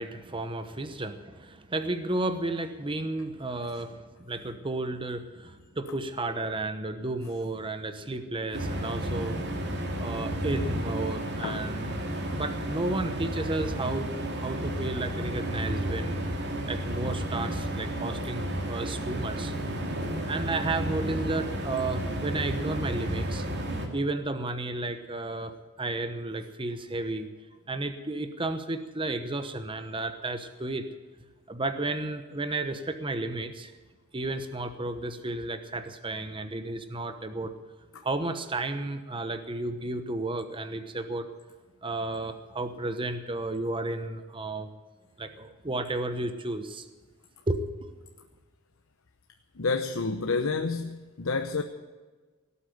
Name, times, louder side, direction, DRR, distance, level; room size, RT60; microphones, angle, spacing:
voice 1, 0.0-9.4 10.0-14.1 14.3-16.3 16.7-19.5 20.3-23.5 23.9-27.3 27.7-30.8 31.5-33.7 34.1-37.5 38.0-41.3 41.8-44.7 45.2-46.9 47.5-48.0, right 2 dB, 25° right, 8 dB, 1.0 m, -33 dB
sound 1, 8.5-23.9, right 1 dB, 50° right, 2.6 m, -32 dB
voice 2, 49.6-51.6, left 4 dB, 65° left, 6 dB, 0.9 m, -29 dB
18.0 x 8.4 x 9.2 m, 1.3 s
head